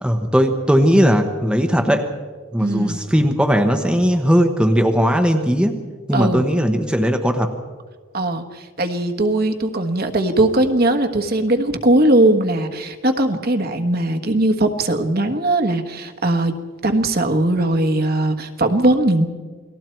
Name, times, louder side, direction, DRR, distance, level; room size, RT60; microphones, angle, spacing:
voice 1, 0.0-2.1 2.5-5.8 6.1-7.5, equal, 5° right, 4 dB, 1.1 m, -18 dB
voice 2, 2.6-3.0 6.1-6.5 8.1-16.5 16.8-19.3, right 1 dB, 45° right, 6 dB, 1.4 m, -19 dB
29.0 x 20.0 x 4.6 m, 1.5 s
head